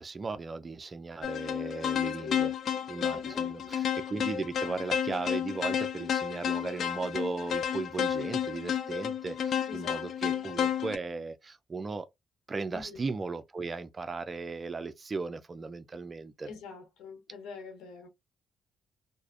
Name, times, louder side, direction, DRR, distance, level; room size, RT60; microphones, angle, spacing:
voice 1, 0.0-2.5 2.9-12.1 12.5-16.5, right 4 dB, 30° right, 0.4 m, -37 dB
sound 1, 1.2-11.0, left 8 dB, 65° left, 0.3 m, -31 dB
voice 2, 2.2-2.5 3.1-3.7 9.7-10.4 12.7-13.0 16.5-18.1, left 5 dB, 85° left, 0.9 m, -45 dB
2.5 x 2.0 x 2.4 m
cardioid pair, 90°, 0 cm